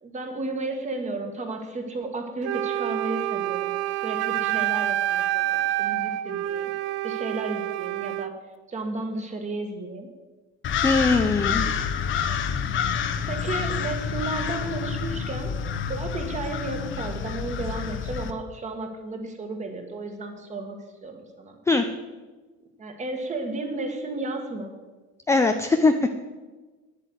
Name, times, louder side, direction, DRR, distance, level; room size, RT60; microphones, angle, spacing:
voice 1, 0.0-6.7 7.0-8.4 8.7-10.1 13.3-15.5 15.9-21.6 22.6-24.7, right 2 dB, 25° right, 5 dB, 1.8 m, -33 dB
Wind instrument woodwind instrument, 2.4-8.3, right 14 dB, 55° right, 0.5 m, -27 dB
sound 1, 10.6-18.3, left 7 dB, 40° left, 0.9 m, -28 dB
voice 2, 10.8-11.7 21.7-21.8 25.3-26.1, left 3 dB, 10° left, 6 dB, 0.5 m, -21 dB
9.9 x 8.5 x 8.0 m, 1.3 s
cardioid pair, 150°, 31 cm